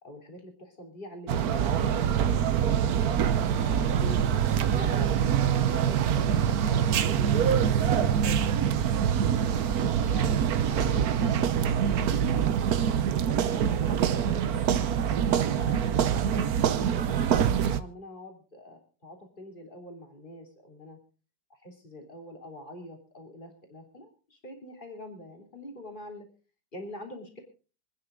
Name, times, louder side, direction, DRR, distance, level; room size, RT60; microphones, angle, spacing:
voice 1, 0.0-2.5 3.1-8.8 9.3-12.6 13.3-21.0 21.5-26.3 26.7-27.4, left 1 dB, 30° left, 3 dB, 3.4 m, -44 dB
sound 1, 1.3-17.8, right 8 dB, 65° right, 1.3 m, -25 dB
27.0 x 9.7 x 3.8 m, 0.36 s
omnidirectional pair, 1.8 m